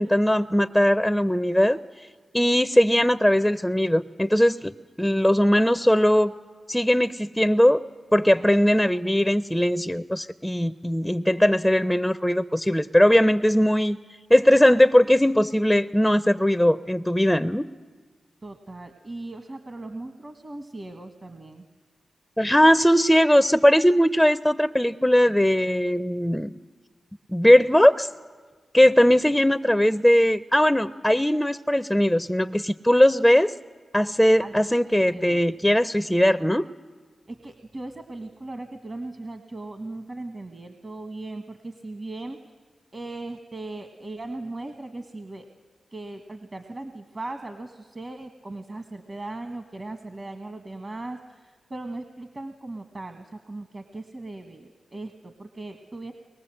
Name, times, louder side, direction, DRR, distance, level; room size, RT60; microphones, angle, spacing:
voice 1, 0.0-1.8 2.3-4.7 5.0-6.3 6.7-7.8 8.1-14.0 14.3-17.7 22.4-26.6 27.3-28.1 28.7-33.5 33.9-36.6, equal, 5° left, 12 dB, 0.6 m, -19 dB
voice 2, 18.4-21.7 34.4-34.6 34.9-35.5 37.3-42.6 42.9-45.5 45.9-56.1, right 2 dB, 45° right, 6 dB, 1.4 m, -38 dB
23.0 x 20.5 x 7.7 m, 1.5 s
cardioid pair, 40°, 0 cm